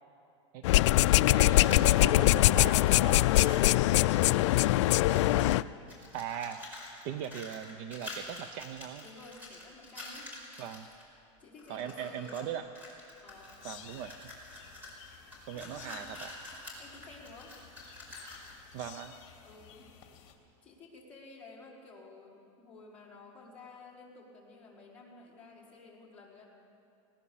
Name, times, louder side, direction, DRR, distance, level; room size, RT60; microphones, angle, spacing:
sound 1, 0.6-5.6, left 17 dB, 65° left, 0.4 m, -23 dB
voice 1, 1.3-3.2 5.0-5.6 6.1-6.6 7.0-9.0 10.6-10.9 11.7-12.7 13.6-14.3 15.5-16.3 18.7-19.1, right 9 dB, 45° right, 10 dB, 0.7 m, -39 dB
sound 2, 1.6-2.7 3.0-5.6 5.9-11.0 11.6-12.5 12.7-18.6, left 2 dB, 10° right, 5.1 m, -47 dB
voice 2, 5.2-6.0 9.0-10.3 11.4-12.5 13.2-13.6 15.5-16.2 16.8-17.6 19.4-19.9 20.6-26.4, left 3 dB, 10° left, -7 dB, 4.6 m, -52 dB
sound 3, 13.3-20.3, left 9 dB, 40° left, 2.4 m, -54 dB
20.0 x 18.5 x 7.1 m, 2.7 s
supercardioid pair, 160°, 16 cm